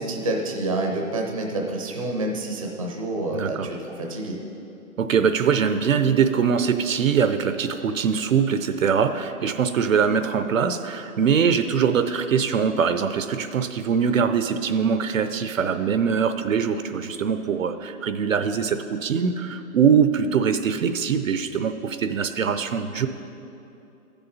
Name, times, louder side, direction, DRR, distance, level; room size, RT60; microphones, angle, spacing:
voice 1, 0.0-4.4, right 2 dB, 25° right, 1 dB, 0.6 m, -28 dB
voice 2, 3.3-3.7 5.0-23.1, right 6 dB, 65° right, 10 dB, 0.6 m, -22 dB
15.0 x 6.9 x 4.1 m, 2.9 s
hypercardioid pair, 170°, 44 cm